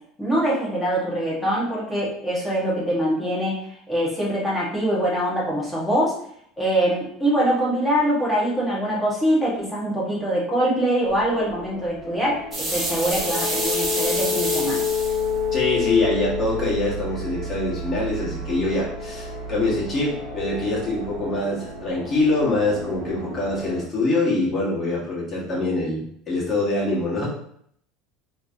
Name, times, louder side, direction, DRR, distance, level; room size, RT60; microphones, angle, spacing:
voice 1, 0.2-6.2 6.6-14.8, right 1 dB, 5° left, -6 dB, 1.6 m, -23 dB
sound 1, 11.1-23.9, left 4 dB, 45° right, 1.4 m, -30 dB
sound 2, 12.5-15.3, right 2 dB, 20° right, 1.6 m, -27 dB
voice 2, 15.5-27.3, left 2 dB, 30° left, -6 dB, 1.7 m, -24 dB
4.4 x 3.2 x 2.8 m, 0.66 s
cardioid pair, 140°, 0 cm